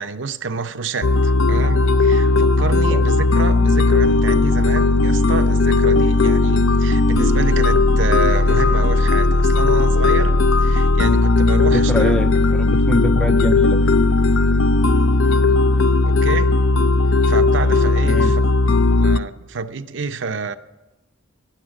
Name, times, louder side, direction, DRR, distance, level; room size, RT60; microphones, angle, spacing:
voice 1, 0.0-10.3 10.6-12.1 16.1-16.5 17.3-18.4 19.0-20.5, right 4 dB, 65° right, 0.6 m, -28 dB
sound 1, 1.0-19.2, left 3 dB, 80° left, 0.6 m, -16 dB
voice 2, 11.7-13.9 18.0-18.4, left 1 dB, 5° left, 0.3 m, -24 dB
11.5 x 11.0 x 7.2 m
head